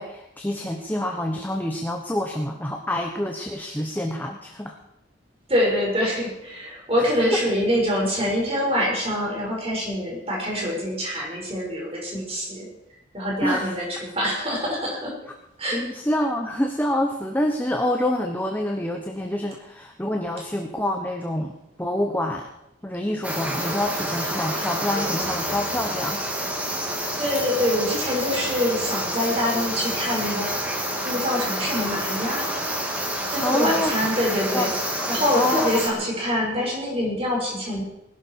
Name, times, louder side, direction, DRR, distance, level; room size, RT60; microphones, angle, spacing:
voice 1, 0.0-4.8 7.0-7.4 13.4-13.7 15.7-22.5 22.8-26.3 33.4-33.9 34.5-35.8, left 1 dB, 10° left, 3 dB, 1.1 m, -27 dB
voice 2, 5.5-12.7 13.1-15.1 15.6-15.8 27.2-30.6 31.0-32.5 33.3-34.7 35.1-37.8, left 1 dB, 30° right, -2 dB, 5.6 m, -25 dB
sound 1, 23.2-35.9, right 1 dB, 5° right, 2.5 m, -28 dB
20.0 x 12.0 x 4.7 m, 0.88 s
head